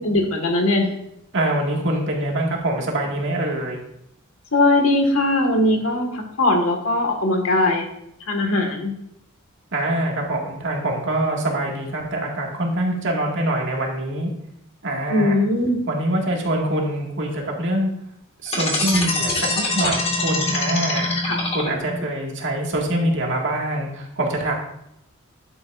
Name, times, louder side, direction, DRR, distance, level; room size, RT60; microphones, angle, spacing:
voice 1, 0.0-0.9 4.5-7.8 8.3-8.9 15.1-15.8 21.3-21.4, left 2 dB, 70° left, 3 dB, 1.8 m, -20 dB
voice 2, 1.3-3.8 9.7-14.3 14.8-15.4 15.9-17.9 18.4-21.1 21.5-24.5, right 1 dB, 60° right, 0 dB, 2.0 m, -24 dB
sound 1, 18.5-22.0, left 2 dB, 30° left, 1.9 m, -23 dB
11.0 x 8.8 x 2.6 m, 0.78 s
head